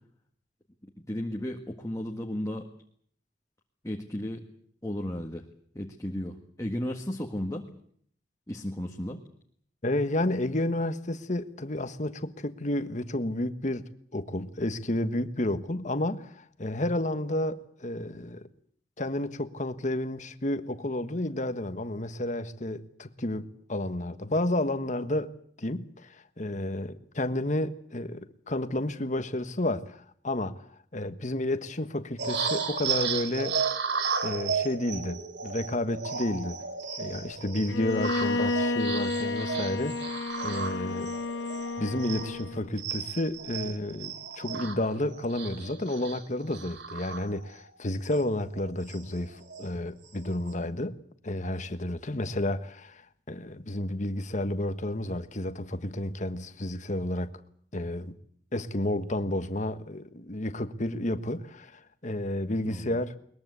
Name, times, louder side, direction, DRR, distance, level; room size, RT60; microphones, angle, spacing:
voice 1, 0.8-2.7 3.8-4.4 4.8-5.4 5.7-7.7 8.5-9.2 62.6-63.0, left 1 dB, 20° left, 1.8 m, -34 dB
voice 2, 9.8-13.8 14.1-18.5 19.0-25.3 25.6-30.6 30.9-33.6 34.2-36.6 37.0-41.2 41.8-51.0 51.2-53.0 53.3-57.3 57.7-58.1 58.5-63.1, left 1 dB, 45° left, 1.4 m, -31 dB
sound 1, 32.2-42.5 42.8-47.7 48.1-48.2 48.5-49.7 50.1-50.5, right 6 dB, 80° right, 3.1 m, -34 dB
Bowed string instrument, 37.7-42.7, left 3 dB, 85° left, 1.2 m, -31 dB
22.0 x 21.5 x 8.2 m
head